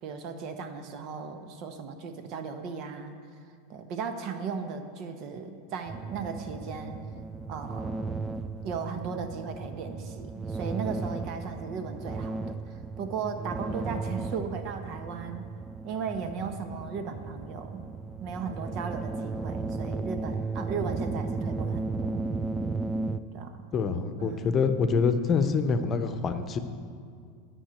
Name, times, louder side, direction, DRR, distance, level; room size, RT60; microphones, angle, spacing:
voice 1, 0.0-3.1 3.7-7.0 7.5-7.9 8.6-15.4 15.8-17.8 18.2-22.3 23.3-23.7 24.2-24.6, right 5 dB, 50° right, 7 dB, 1.1 m, -36 dB
sound 1, 5.9-23.2, right 3 dB, 15° right, 0.5 m, -35 dB
voice 2, 23.7-26.6, left 5 dB, 35° left, 8 dB, 0.8 m, -26 dB
10.0 x 5.6 x 8.3 m, 2.2 s
hypercardioid pair, 90°, 0 cm